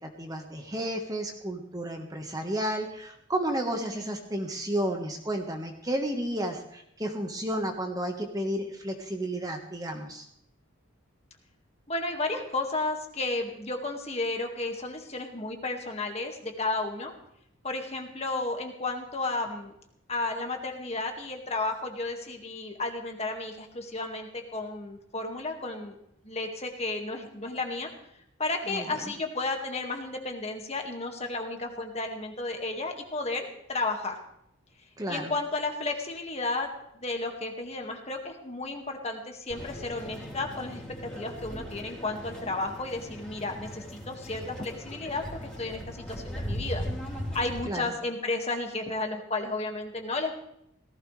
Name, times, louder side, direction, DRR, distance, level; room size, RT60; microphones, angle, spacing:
voice 1, 0.0-10.3 28.7-29.1 35.0-35.3 47.6-47.9, right 1 dB, 15° right, 3 dB, 1.5 m, -32 dB
voice 2, 11.9-17.1 17.6-19.7 20.1-26.0 26.2-27.9 28.4-34.2 35.1-36.7 36.9-46.9 47.3-50.3, left 2 dB, 30° left, 3 dB, 2.0 m, -33 dB
sound 1, 39.5-47.6, equal, 5° left, 3.9 m, -38 dB
18.0 x 16.0 x 3.4 m, 0.75 s
head